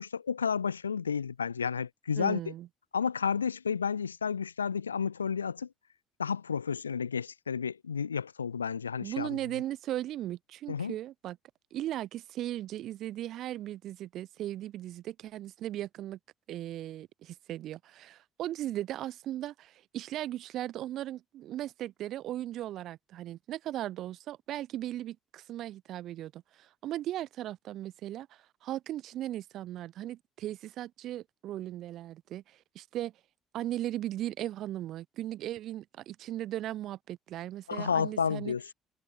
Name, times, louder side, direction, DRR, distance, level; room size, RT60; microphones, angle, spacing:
voice 1, 0.0-2.5 2.9-5.7 6.2-9.3 10.7-10.9 37.7-38.6, left 6 dB, 80° left, 0.3 m, -31 dB
voice 2, 2.2-2.7 9.0-11.4 11.7-16.2 16.5-33.1 33.5-38.6, right 13 dB, 55° right, 0.8 m, -37 dB
figure-of-eight pair, 50°, 0 cm